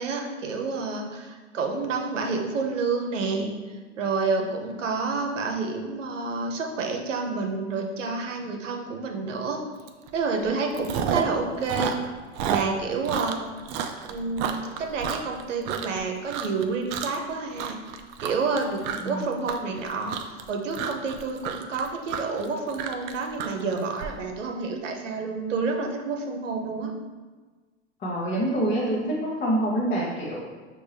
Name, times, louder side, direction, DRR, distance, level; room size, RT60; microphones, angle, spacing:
voice 1, 0.0-3.5 4.0-9.6 10.1-12.0 12.4-13.4 14.1-17.8 18.2-20.1 20.5-26.9, right 4 dB, 85° right, 2 dB, 0.8 m, -29 dB
Chewing mastication, 9.9-10.1 10.4-11.4 11.6-16.0 16.3-16.6 16.9-17.3 17.6-24.1, right 8 dB, 40° right, 0.4 m, -30 dB
voice 2, 28.0-30.4, right 1 dB, 25° left, -6 dB, 0.8 m, -26 dB
5.4 x 2.6 x 3.2 m, 1.4 s
hypercardioid pair, 105°, 36 cm